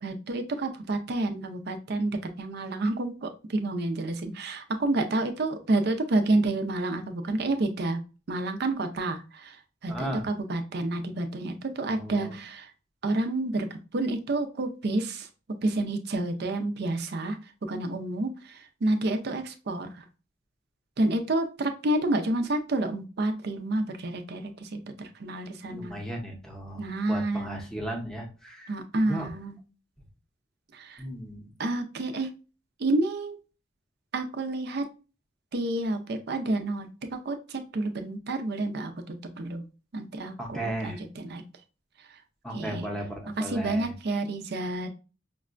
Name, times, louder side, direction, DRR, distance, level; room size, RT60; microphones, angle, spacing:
voice 1, 0.0-8.0 8.3-9.5 9.8-12.7 13.0-13.7 13.9-15.3 15.6-17.4 17.7-18.3 18.8-19.9 21.0-24.4 24.7-25.9 26.8-27.6 28.7-29.5 30.7-31.0 31.6-32.3 32.8-33.4 34.1-34.9 35.5-37.4 37.7-39.6 39.9-41.4 42.5-42.9 43.4-44.9, right 2 dB, 55° right, 7 dB, 0.5 m, -29 dB
voice 2, 9.9-10.2 11.8-12.4 25.7-28.7 29.0-29.3 31.0-31.5 40.4-41.0 42.4-43.9, right 1 dB, 5° left, 1 dB, 0.6 m, -36 dB
5.2 x 2.1 x 2.4 m, 0.33 s
head